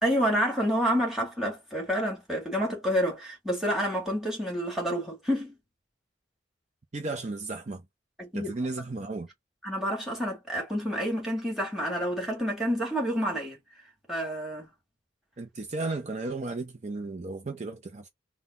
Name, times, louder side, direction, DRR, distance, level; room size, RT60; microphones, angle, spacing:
voice 1, 0.0-5.6 8.2-8.5 9.6-13.6 14.1-14.7, equal, ahead, 2.0 m, -28 dB
voice 2, 6.9-7.8 8.3-9.3 15.4-18.1, right 3 dB, 40° right, 0.5 m, -34 dB
3.9 x 2.2 x 4.0 m
head